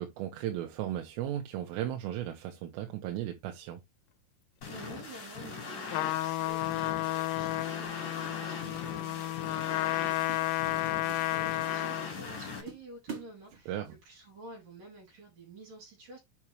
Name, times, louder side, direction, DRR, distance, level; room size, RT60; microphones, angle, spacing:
voice 1, 0.0-3.8 13.7-14.0, right 12 dB, 85° right, 3.7 m, -36 dB
sound 1, 4.6-12.6, left 4 dB, 40° left, 4.8 m, -42 dB
voice 2, 4.7-16.2, right 2 dB, 45° right, 5.9 m, -50 dB
Trumpet, 5.9-12.2, left 17 dB, 85° left, 3.4 m, -32 dB
sound 2, 7.8-8.8 9.0-9.3 9.8-10.0 10.3-11.8 12.2-12.3 12.7-14.0, right 6 dB, 60° right, 1.3 m, -46 dB
8.5 x 6.0 x 3.0 m
omnidirectional pair, 5.8 m